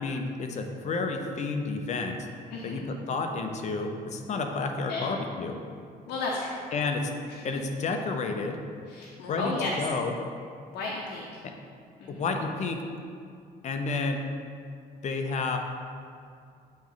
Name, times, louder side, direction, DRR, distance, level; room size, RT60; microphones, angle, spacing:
voice 1, 0.0-2.2 2.6-5.6 6.7-7.1 7.4-8.6 9.3-10.1 12.1-12.8 13.6-14.2 15.0-15.6, left 3 dB, 45° left, 4 dB, 0.7 m, -30 dB
voice 2, 2.5-2.9 4.9-5.1 6.1-6.6 7.3-7.4 8.9-9.7 10.7-11.2 12.0-12.2, left 3 dB, 80° left, -3 dB, 0.8 m, -33 dB
8.4 x 3.1 x 3.9 m, 2.3 s
cardioid pair, 110°, 17 cm